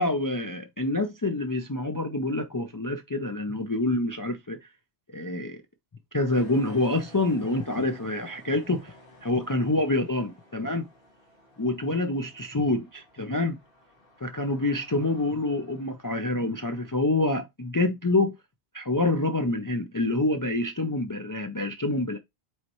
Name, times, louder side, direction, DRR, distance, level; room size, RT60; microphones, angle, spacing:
voice 1, 0.0-4.6 5.1-5.6 6.1-8.9 9.2-10.9 11.6-13.6 14.2-18.4 18.7-22.2, left 2 dB, 30° left, 0.4 m, -27 dB
sound 1, 6.3-16.9, left 1 dB, 60° left, 2.1 m, -54 dB
7.8 x 4.3 x 3.0 m
omnidirectional pair, 1.1 m